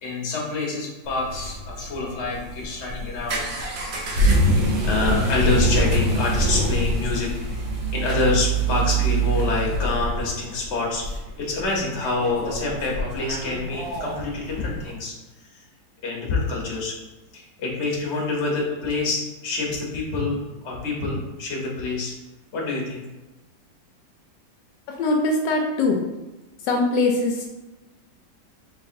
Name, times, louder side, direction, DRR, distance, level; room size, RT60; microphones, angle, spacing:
voice 1, 0.0-3.5 4.4-7.7 7.9-15.6 16.0-16.9 17.3-22.1 22.5-23.0, left 3 dB, 45° left, -3 dB, 1.1 m, -27 dB
sound 1, 1.1-14.9, right 2 dB, 85° right, 1.6 m, -25 dB
voice 2, 24.9-26.0 26.6-27.5, left 2 dB, 80° left, 1 dB, 1.2 m, -22 dB
4.0 x 3.6 x 2.6 m, 1.1 s
omnidirectional pair, 2.0 m